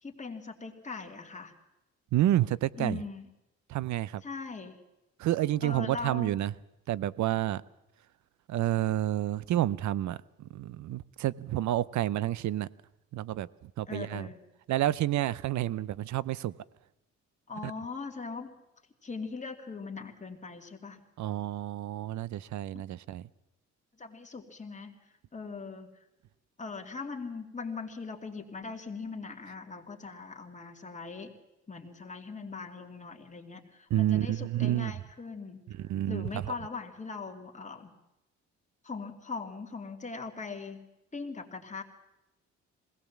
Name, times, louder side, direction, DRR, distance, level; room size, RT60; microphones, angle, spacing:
voice 1, 0.0-1.6 2.8-3.2 4.2-4.8 5.6-6.4 13.9-14.4 17.5-18.6 19.0-21.0 24.0-25.0 25.3-25.9 26.6-31.3 31.7-35.6 36.1-37.9 38.8-40.9 41.1-41.8, left 4 dB, 25° left, 2.6 m, -40 dB
voice 2, 2.1-3.0 3.7-4.2 5.2-6.5 6.9-7.6 8.5-12.7 13.1-14.3 14.7-16.5 21.2-23.3 33.9-34.9 35.7-36.5, right 13 dB, 70° right, 0.6 m, -29 dB
21.0 x 17.5 x 7.3 m
cardioid pair, 90°, 30 cm